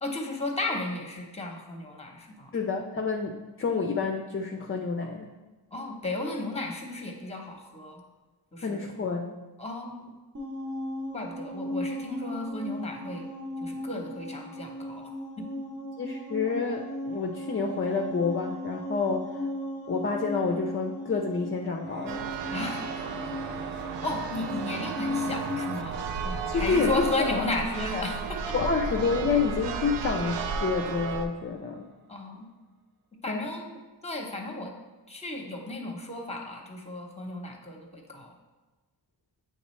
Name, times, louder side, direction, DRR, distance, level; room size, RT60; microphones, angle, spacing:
voice 1, 0.0-2.5 5.7-8.0 8.5-8.9 9.6-10.1 11.1-13.3 13.6-15.1 15.4-15.5 22.5-22.8 24.0-28.5 32.1-32.5 33.2-33.8 34.0-34.7 35.1-38.3, left 2 dB, 15° left, 2 dB, 0.8 m, -34 dB
voice 2, 2.5-5.3 8.6-9.3 16.0-19.3 19.9-22.3 26.5-27.5 28.5-31.9 33.3-33.5, left 4 dB, 30° left, 2 dB, 0.4 m, -28 dB
sound 1, 10.3-25.7, left 1 dB, 45° right, 0.9 m, -36 dB
Singing / Musical instrument, 21.8-31.9, right 5 dB, 25° right, 0.5 m, -42 dB
Church bell, 22.1-31.3, right 5 dB, 85° right, 0.5 m, -34 dB
8.3 x 3.6 x 3.1 m, 1.2 s
wide cardioid pair, 110°, 42 cm